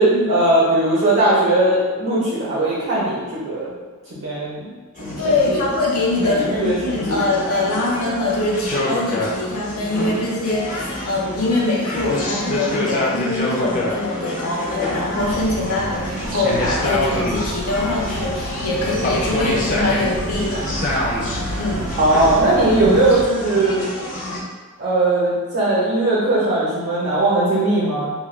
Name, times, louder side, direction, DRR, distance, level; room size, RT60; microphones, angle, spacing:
voice 1, 0.0-3.7 4.2-4.7 5.0-5.1 5.5-5.6 6.2-7.2 22.0-23.8 24.8-28.1, right 2 dB, 55° right, -7 dB, 0.7 m, -18 dB
sound 1, 5.0-24.4, left 1 dB, 35° left, 0.4 m, -27 dB
voice 2, 5.2-20.7 21.6-21.9, left 2 dB, 85° left, -4 dB, 0.6 m, -23 dB
sound 2, 15.2-23.3, right 1 dB, 85° right, 0.4 m, -30 dB
2.2 x 2.2 x 3.2 m, 1.4 s
head